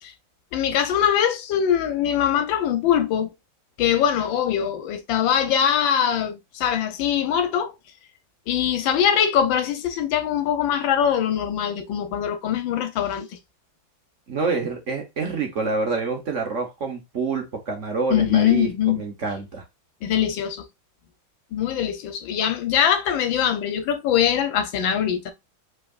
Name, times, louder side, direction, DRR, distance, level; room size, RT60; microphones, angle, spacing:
voice 1, 0.5-3.3 3.8-7.7 8.5-13.3 18.1-19.0 20.0-20.7 21.5-25.3, left 9 dB, 75° left, 1.6 m, -22 dB
voice 2, 14.3-18.7 18.9-19.6, right 4 dB, 45° right, 1.3 m, -27 dB
4.9 x 3.8 x 2.4 m
omnidirectional pair, 2.2 m